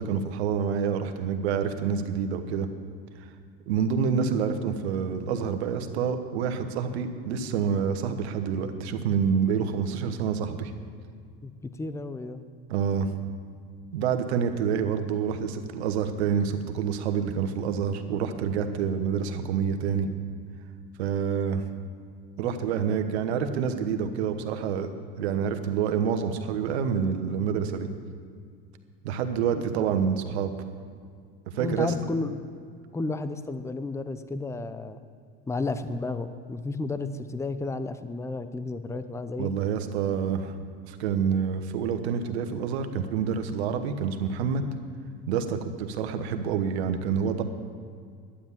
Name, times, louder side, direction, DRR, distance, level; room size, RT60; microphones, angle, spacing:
voice 1, 0.0-2.7 3.7-10.7 12.7-13.1 13.9-20.1 21.0-21.6 22.4-27.9 29.0-30.5 31.5-31.9 39.4-40.5 40.9-44.6 45.3-47.4, right 7 dB, 85° right, 8 dB, 1.2 m, -27 dB
voice 2, 11.4-12.4 29.5-29.7 31.5-32.4 32.9-35.0 35.5-39.5, left 3 dB, 10° left, 11 dB, 0.7 m, -32 dB
12.0 x 9.9 x 7.3 m, 2.1 s
supercardioid pair, 95°, 31 cm